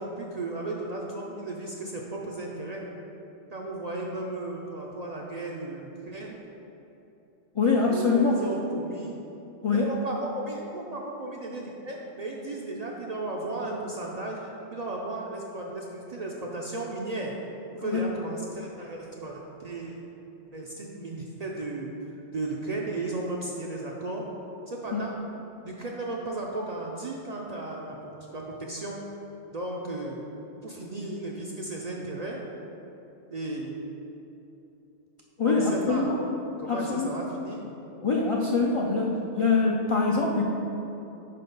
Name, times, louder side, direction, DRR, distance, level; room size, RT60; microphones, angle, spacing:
voice 1, 0.0-2.8 3.5-6.4 7.9-9.2 9.7-17.3 17.7-20.1 20.5-21.9 22.3-24.3 24.7-25.2 25.6-29.0 29.5-30.2 30.6-32.4 33.3-33.8 35.4-36.1 36.6-37.7, right 2 dB, 50° right, -2 dB, 0.5 m, -35 dB
voice 2, 7.5-8.4 9.6-9.9 17.8-18.0 24.9-25.0 35.4-36.2 36.7-37.2 38.0-40.4, left 4 dB, 55° left, -2 dB, 0.3 m, -24 dB
5.4 x 4.2 x 5.2 m, 3.0 s
omnidirectional pair, 1.2 m